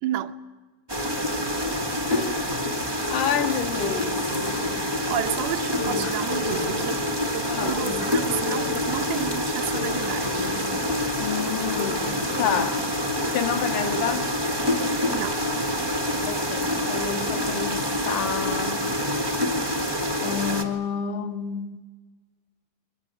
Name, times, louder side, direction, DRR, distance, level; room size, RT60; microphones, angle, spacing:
voice 1, 0.0-0.3 4.8-7.0 7.3-10.5 15.1-15.4, right 11 dB, 85° right, 3.0 m, -31 dB
sound 1, 0.9-20.6, left 1 dB, 35° right, 0.3 m, -27 dB
voice 2, 2.1-2.7 3.1-4.2 7.4-7.9 11.2-12.8 13.3-14.3 16.3-18.9 20.2-21.8, left 8 dB, 65° left, 2.5 m, -29 dB
sound 2, 3.0-12.7, left 5 dB, 85° left, 8.8 m, -35 dB
22.5 x 21.5 x 9.1 m
omnidirectional pair, 4.3 m